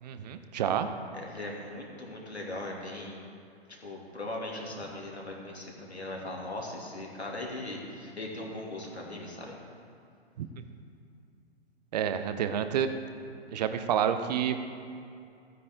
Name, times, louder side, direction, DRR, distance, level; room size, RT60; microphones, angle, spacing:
voice 1, 0.0-0.9 10.4-10.5 11.9-12.9 13.5-14.6, right 9 dB, 40° right, 9 dB, 0.8 m, -29 dB
voice 2, 1.1-3.2 3.8-9.5, left 2 dB, 85° left, -2 dB, 2.7 m, -39 dB
15.0 x 9.3 x 3.7 m, 2.5 s
figure-of-eight pair, 120°, 32 cm